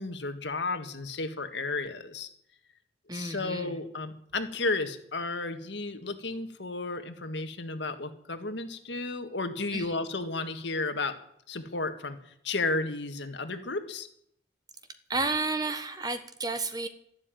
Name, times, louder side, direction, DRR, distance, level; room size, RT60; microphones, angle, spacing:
voice 1, 0.0-2.3 3.1-11.1 11.5-14.1, left 3 dB, 80° left, 8 dB, 1.7 m, -33 dB
voice 2, 3.1-3.8 9.7-9.9 15.1-16.9, right 3 dB, 20° right, 9 dB, 1.2 m, -31 dB
12.5 x 12.0 x 9.2 m, 0.70 s
head